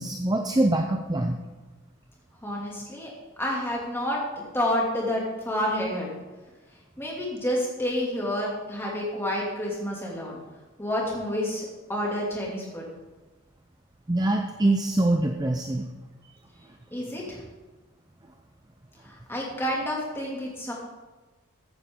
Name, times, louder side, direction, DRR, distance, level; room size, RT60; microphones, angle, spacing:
voice 1, 0.0-1.4 14.1-15.9, right 1 dB, 20° right, 4 dB, 0.5 m, -24 dB
voice 2, 2.4-3.1 3.4-6.1 7.0-10.4 10.8-12.9 16.9-17.4 19.0-20.7, left 1 dB, 10° left, -3 dB, 2.5 m, -29 dB
14.5 x 9.3 x 3.7 m, 1.2 s
head